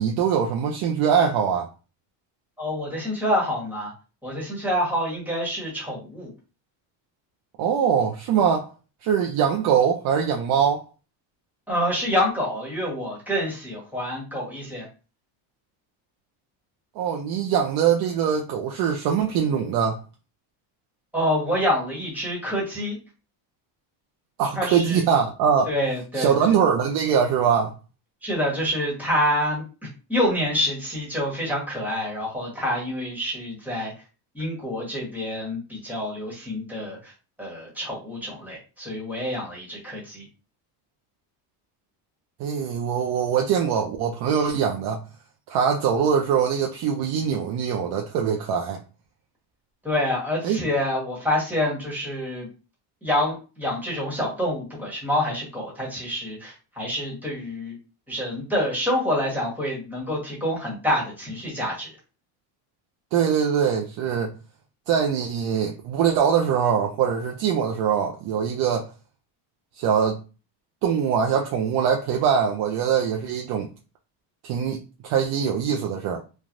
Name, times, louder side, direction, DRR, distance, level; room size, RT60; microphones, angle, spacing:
voice 1, 0.0-1.7 7.6-8.7 9.0-10.8 17.0-20.0 24.4-25.7 26.1-27.7 42.4-45.0 45.5-48.8 50.4-50.6 63.1-64.3 64.9-68.9 69.8-70.2 70.8-73.7 74.4-76.2, right 7 dB, 55° right, 0.5 m, -22 dB
voice 2, 2.6-3.9 4.2-6.3 11.7-14.9 21.1-23.0 24.5-25.0 25.7-26.3 28.2-29.6 30.1-33.9 34.3-37.1 37.4-40.2 49.8-52.5 53.0-57.7 58.1-61.9, left 1 dB, 5° right, 1.3 m, -27 dB
3.2 x 2.2 x 2.5 m
cardioid pair, 140°, 47 cm